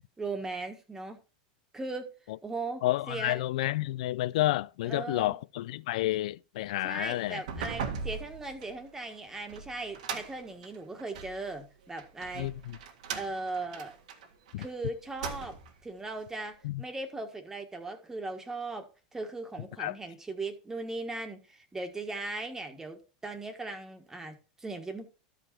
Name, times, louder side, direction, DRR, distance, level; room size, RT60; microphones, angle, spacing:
voice 1, 0.2-1.2 1.7-2.1 2.4-3.4 4.8-5.4 6.8-12.5 13.1-13.9 14.6-15.6 15.8-25.1, right 3 dB, 10° right, 1.6 m, -38 dB
voice 2, 2.8-7.4 12.3-12.8 14.5-14.6 16.6-16.8 19.8-19.9, left 16 dB, 75° left, 0.4 m, -30 dB
sound 1, 7.3-11.4 12.0-14.7 15.0-15.8, right 5 dB, 85° right, 1.7 m, -39 dB
12.5 x 5.0 x 4.4 m
supercardioid pair, 120°, 4 cm